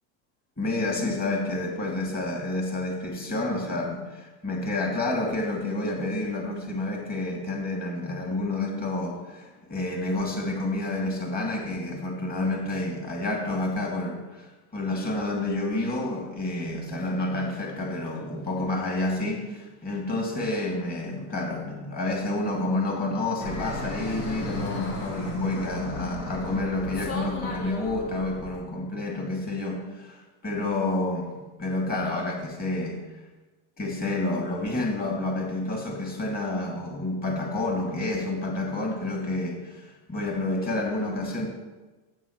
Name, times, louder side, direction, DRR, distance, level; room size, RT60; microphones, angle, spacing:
voice 1, 0.6-30.2 30.4-31.3 31.6-33.1 33.8-41.5, left 2 dB, 20° left, 0 dB, 2.3 m, -29 dB
Fixed-wing aircraft airplane, 23.4-28.6, left 1 dB, 85° left, 2.7 m, -35 dB
11.5 x 8.6 x 3.1 m, 1.2 s
supercardioid pair, 120°, 43 cm